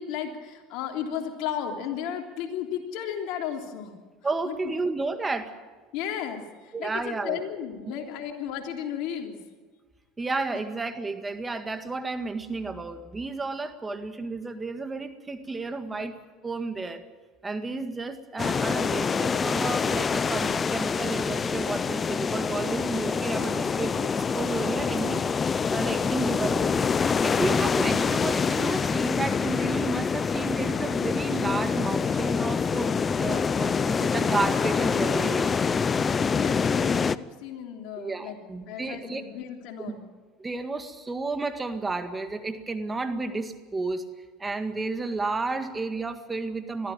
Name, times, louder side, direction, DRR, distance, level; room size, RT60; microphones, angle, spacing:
voice 1, 0.0-3.9 4.4-4.7 5.9-9.4 16.0-16.1 36.3-40.0, left 9 dB, 65° left, 3 dB, 3.3 m, -34 dB
voice 2, 4.2-5.5 6.7-7.4 7.9-8.1 10.2-16.2 16.4-17.0 17.4-25.2 25.7-26.9 27.2-35.8 38.0-39.3 40.4-44.0 44.4-46.9, right 3 dB, 20° right, 8 dB, 1.9 m, -32 dB
sound 1, 18.4-37.2, left 5 dB, 30° left, 0.6 m, -26 dB
21.5 x 14.5 x 8.9 m, 1.4 s
supercardioid pair, 95°, 0 cm